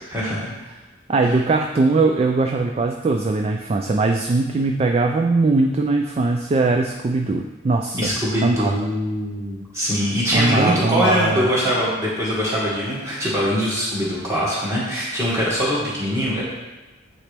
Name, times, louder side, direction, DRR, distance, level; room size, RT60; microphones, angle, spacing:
voice 1, 0.1-0.5 7.9-16.4, equal, 15° right, -8 dB, 2.0 m, -22 dB
voice 2, 1.1-8.1 8.4-8.7 10.3-11.5, right 3 dB, 30° right, 3 dB, 0.3 m, -20 dB
8.6 x 4.1 x 3.4 m, 1.2 s
head